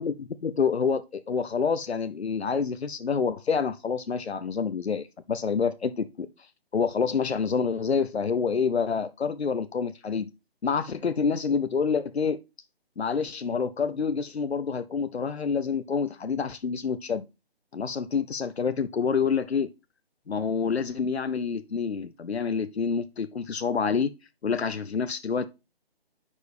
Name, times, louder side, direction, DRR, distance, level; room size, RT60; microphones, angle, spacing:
voice 1, 0.0-6.3 6.7-10.3 10.6-12.4 13.0-17.2 17.7-19.7 20.3-24.1 24.4-25.5, left 5 dB, 90° left, 0.7 m, -27 dB
9.7 x 4.6 x 3.4 m
figure-of-eight pair, 150°, 31 cm